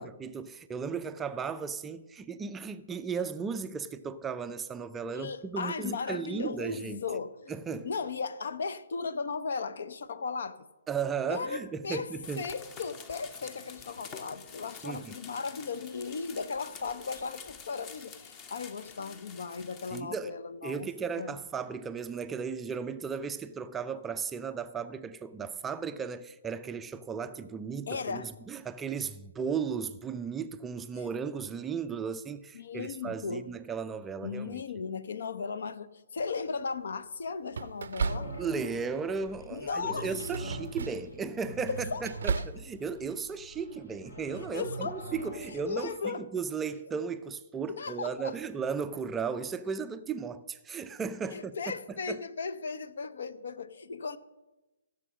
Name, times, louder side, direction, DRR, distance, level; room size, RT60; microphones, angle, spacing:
voice 1, 0.0-7.0 7.5-7.9 10.9-12.4 14.8-15.2 19.9-20.3 20.6-34.6 38.4-51.6 52.1-52.2, right 6 dB, 10° right, 0.4 m, -35 dB
voice 2, 5.1-7.5 7.8-10.6 11.3-12.1 12.4-20.9 21.2-21.4 27.9-28.3 30.9-31.0 32.5-33.5 34.2-38.3 39.5-40.1 41.7-42.0 42.3-42.4 44.5-45.0 45.5-46.3 47.7-48.4 51.3-54.2, left 5 dB, 55° left, 0.7 m, -36 dB
sound 1, 12.2-20.0, left 6 dB, 25° left, 0.9 m, -48 dB
sound 2, 36.2-36.6 37.5-38.8 39.1-39.5 40.1-41.2 41.5-42.6, right 5 dB, 55° right, 0.5 m, -35 dB
sound 3, 38.0-45.8, right 1 dB, 75° left, 4.7 m, -43 dB
15.0 x 7.1 x 6.4 m
figure-of-eight pair, 130°, 0 cm